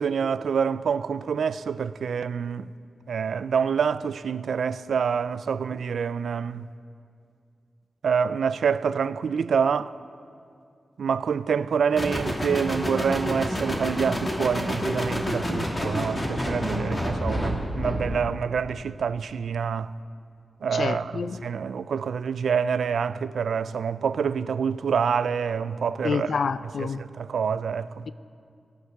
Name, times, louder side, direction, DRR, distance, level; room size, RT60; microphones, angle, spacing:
voice 1, 0.0-2.7 3.1-6.7 8.0-9.9 11.0-19.9 20.6-26.5 26.8-28.1, right 6 dB, 85° right, 0.3 m, -27 dB
sound 1, 12.0-18.3, equal, 20° left, 1.7 m, -28 dB
voice 2, 20.7-21.5 26.0-27.0, left 5 dB, 65° left, 0.3 m, -28 dB
17.5 x 8.0 x 5.9 m
wide cardioid pair, 155°, 0 cm